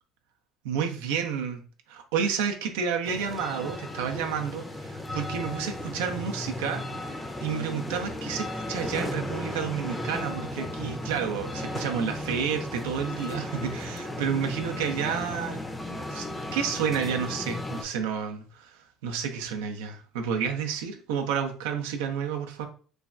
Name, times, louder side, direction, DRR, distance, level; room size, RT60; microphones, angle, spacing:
voice 1, 0.6-1.6 1.9-15.6 15.9-22.7, right 7 dB, 85° right, 0.4 m, -30 dB
sound 1, 3.0-17.8, left 1 dB, 15° left, 0.5 m, -35 dB
3.1 x 2.2 x 2.4 m
supercardioid pair, 80°, 0 cm